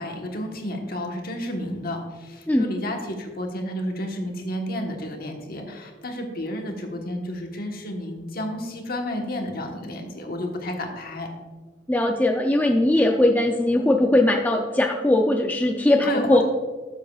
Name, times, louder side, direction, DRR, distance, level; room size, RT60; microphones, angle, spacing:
voice 1, 0.0-11.3 16.0-16.4, left 1 dB, 55° left, 2 dB, 1.2 m, -31 dB
voice 2, 11.9-16.4, left 1 dB, 10° left, 3 dB, 0.4 m, -20 dB
12.0 x 7.4 x 2.4 m, 1.3 s
head